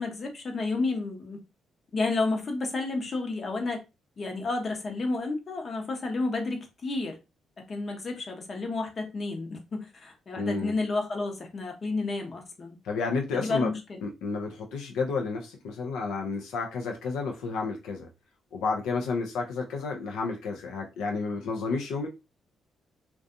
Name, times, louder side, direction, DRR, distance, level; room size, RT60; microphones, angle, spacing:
voice 1, 0.0-1.4 1.9-3.8 4.2-7.2 7.7-12.8 13.3-14.0, left 3 dB, 40° left, 0.8 m, -31 dB
voice 2, 10.4-10.7 12.8-13.7 14.0-18.1 18.5-22.1, left 4 dB, 90° left, 0.4 m, -31 dB
2.6 x 2.3 x 2.5 m
cardioid pair, 90°, 0 cm